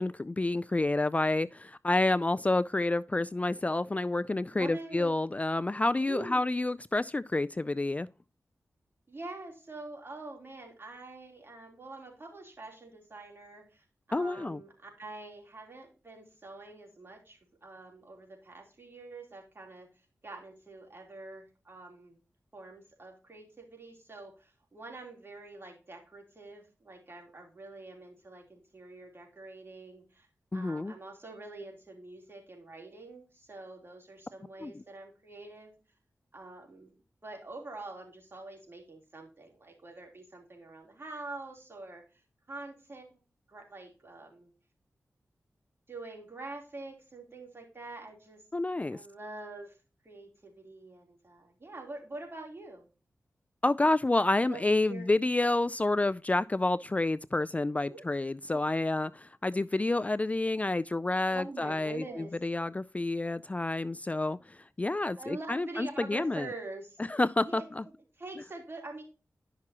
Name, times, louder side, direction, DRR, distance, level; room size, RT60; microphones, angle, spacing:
voice 1, 0.0-8.1 14.1-14.6 30.5-30.9 34.6-34.7 48.5-49.0 53.6-66.5 67.1-67.8, left 2 dB, 25° left, 0.3 m, -29 dB
voice 2, 4.5-5.2 6.0-6.5 9.1-19.9 20.2-22.2 22.5-30.3 30.5-35.7 36.3-36.9 37.2-42.2 42.5-43.2 43.5-44.5 45.9-48.4 48.9-49.8 50.0-52.8 54.4-55.1 57.8-58.0 61.2-62.4 65.2-67.0 67.5-67.7 68.2-69.0, right 2 dB, 45° right, 3.4 m, -45 dB
11.0 x 6.0 x 2.9 m
cardioid pair, 40°, 6 cm